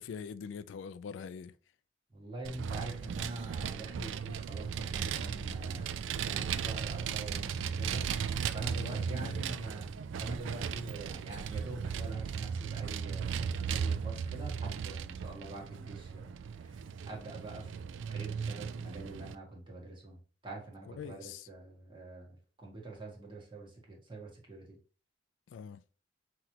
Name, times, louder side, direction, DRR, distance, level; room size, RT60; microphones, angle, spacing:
voice 1, 0.0-1.5 8.7-9.6 21.0-21.5 25.5-25.8, left 6 dB, 80° left, 0.3 m, -44 dB
voice 2, 2.1-5.9 6.2-8.1 8.5-24.8, right 2 dB, 25° right, 1.5 m, -45 dB
Vehicle, 2.4-19.4, right 7 dB, 90° right, 0.3 m, -36 dB
5.8 x 3.1 x 2.9 m
head